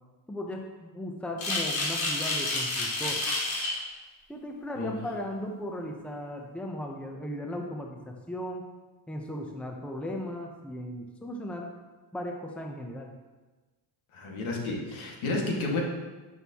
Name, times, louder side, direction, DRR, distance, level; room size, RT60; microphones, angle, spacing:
voice 1, 0.3-3.2 4.3-8.7 9.1-11.7 12.1-13.1, equal, 5° left, 1 dB, 0.8 m, -37 dB
sound 1, 1.4-3.8, left 2 dB, 85° left, 2.8 m, -29 dB
voice 2, 14.1-15.8, left 2 dB, 70° left, -1 dB, 2.1 m, -31 dB
10.5 x 6.3 x 3.0 m, 1.2 s
cardioid pair, 105°, 50 cm